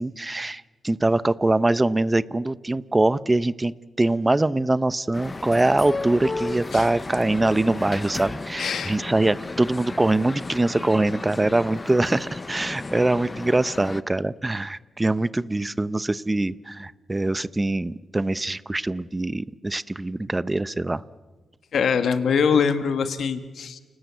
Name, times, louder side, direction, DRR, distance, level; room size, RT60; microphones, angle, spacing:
voice 1, 0.0-21.0, right 2 dB, 20° right, 17 dB, 0.8 m, -23 dB
sound 1, 5.1-14.0, left 3 dB, 25° left, 0.7 m, -34 dB
voice 2, 8.6-9.0 21.7-23.8, left 6 dB, 70° left, 9 dB, 1.8 m, -23 dB
29.0 x 19.5 x 8.4 m, 1.3 s
cardioid pair, 80°, 0 cm